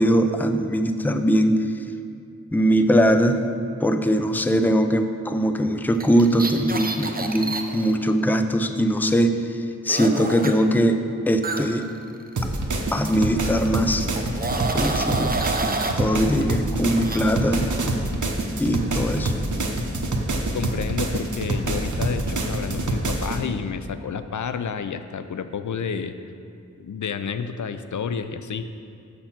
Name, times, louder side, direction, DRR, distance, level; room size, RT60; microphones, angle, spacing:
voice 1, 0.0-1.7 2.5-3.4 3.8-11.9 12.9-14.1 14.7-15.4 16.0-17.7 18.6-19.3, equal, 5° left, 8 dB, 0.4 m, -21 dB
sound 1, 5.9-7.9 9.9-10.5 11.4-12.8 13.1-13.3 14.2-16.0 16.9-17.2, right 3 dB, 30° right, 0.6 m, -28 dB
sound 2, 12.4-23.4, right 2 dB, 80° right, 0.9 m, -26 dB
voice 2, 20.5-26.2 26.8-28.7, left 6 dB, 75° left, 10 dB, 0.4 m, -30 dB
7.0 x 6.7 x 5.9 m, 2.4 s
wide cardioid pair, 70°, 30 cm